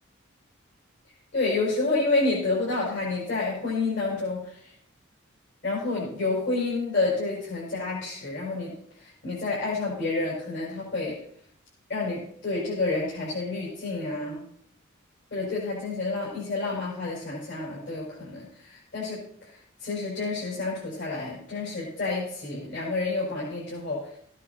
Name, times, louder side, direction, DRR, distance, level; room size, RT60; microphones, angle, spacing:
voice 1, 1.3-4.6 5.6-8.7 9.0-11.2 11.9-14.4 15.3-19.2 19.8-24.1, left 3 dB, 60° left, -6 dB, 5.3 m, -29 dB
15.5 x 9.1 x 4.2 m, 0.66 s
head